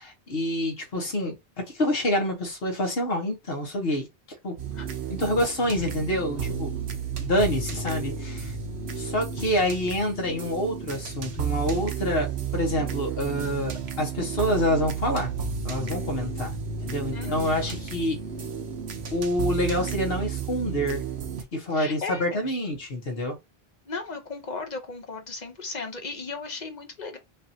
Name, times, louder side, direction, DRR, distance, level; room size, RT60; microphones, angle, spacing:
voice 1, 0.0-1.4 1.7-4.1 4.4-4.6 5.1-6.7 7.2-8.5 9.0-15.3 15.6-16.5 16.9-18.2 19.1-21.0 21.5-23.4, left 1 dB, 65° left, 1.6 m, -27 dB
sound 1, 4.6-21.4, right 6 dB, 85° right, 1.1 m, -32 dB
voice 2, 17.1-17.8 21.7-22.4 23.9-27.2, left 4 dB, 45° left, 1.0 m, -36 dB
5.2 x 2.6 x 2.8 m
omnidirectional pair, 1.1 m